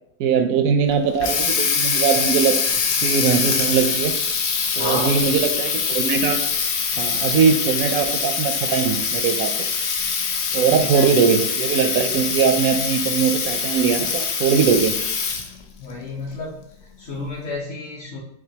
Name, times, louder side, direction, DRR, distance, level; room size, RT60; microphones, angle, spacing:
voice 1, 0.2-2.5 3.0-4.1 4.8-6.4 7.0-9.5 10.5-14.9, right 6 dB, 70° right, 6 dB, 0.9 m, -20 dB
Water tap faucet, 0.9-15.6, left 6 dB, 80° left, 0.6 m, -23 dB
voice 2, 4.7-5.3 10.7-11.1 15.8-16.6 17.0-18.2, left 2 dB, 50° left, -6 dB, 1.1 m, -31 dB
7.5 x 2.5 x 2.8 m, 0.75 s
omnidirectional pair, 1.8 m